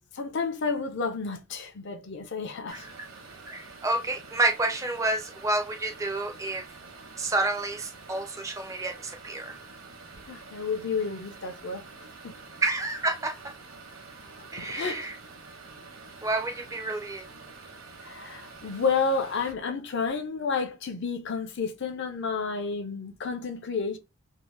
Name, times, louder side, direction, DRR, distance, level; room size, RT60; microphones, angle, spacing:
voice 1, 0.1-2.8 10.3-11.8 12.2-12.3 14.6-15.0 18.0-24.0, left 4 dB, 55° left, 0.5 m, -30 dB
voice 2, 2.7-3.1 3.5-6.7 7.2-9.6 12.6-13.5 14.5-15.2 16.2-17.3, right 2 dB, 15° right, 0.4 m, -29 dB
sound 1, 2.7-19.5, right 4 dB, 70° right, 0.9 m, -47 dB
2.7 x 2.1 x 3.1 m
head